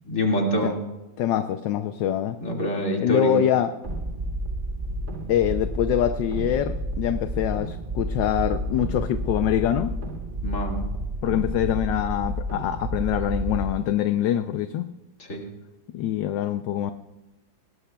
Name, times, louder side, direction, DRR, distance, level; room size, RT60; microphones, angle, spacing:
voice 1, 0.1-0.7 2.4-3.4 10.4-10.9 15.3-15.4, equal, 40° left, 0 dB, 2.5 m, -25 dB
voice 2, 1.2-2.4 3.0-3.7 5.3-9.9 11.2-14.9 15.9-16.9, left 11 dB, 75° left, 9 dB, 1.2 m, -24 dB
sound 1, 3.8-13.7, right 1 dB, 30° right, 1.1 m, -30 dB
20.5 x 18.5 x 2.3 m, 1.0 s
omnidirectional pair, 2.1 m